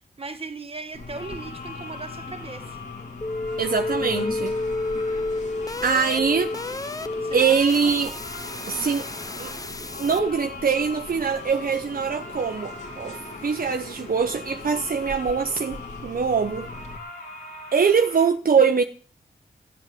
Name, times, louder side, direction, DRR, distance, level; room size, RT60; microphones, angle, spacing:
voice 1, 0.2-2.8 7.2-8.2 8.7-9.2, right 3 dB, 35° right, 1.8 m, -38 dB
sound 1, 0.9-18.3, left 3 dB, 70° left, 3.2 m, -41 dB
sound 2, 0.9-17.0, left 2 dB, 45° left, 2.7 m, -40 dB
sound 3, 3.2-10.3, left 2 dB, 20° left, 0.7 m, -30 dB
voice 2, 3.6-4.6 5.8-6.5 7.3-8.1 8.7-9.0 9.4-9.5 10.0-16.7 17.7-18.8, right 6 dB, 60° right, 0.9 m, -23 dB
15.0 x 8.0 x 7.7 m
wide cardioid pair, 80°, 17 cm